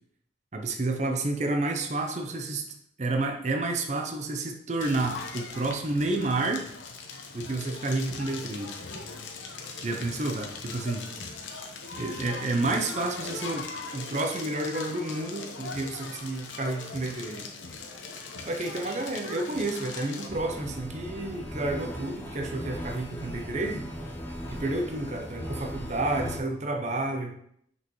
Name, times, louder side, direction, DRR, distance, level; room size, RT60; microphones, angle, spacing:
voice 1, 0.5-2.6 3.0-6.7 7.3-8.7 9.8-11.1 12.0-13.7 13.9-17.5 18.5-23.9 24.5-27.4, right 2 dB, 40° right, 4 dB, 0.6 m, -30 dB
Crackle, 4.8-20.3, left 4 dB, 90° left, 0.9 m, -40 dB
sound 1, 20.3-26.4, equal, 10° left, 0.6 m, -38 dB
6.2 x 5.2 x 3.1 m, 0.70 s
head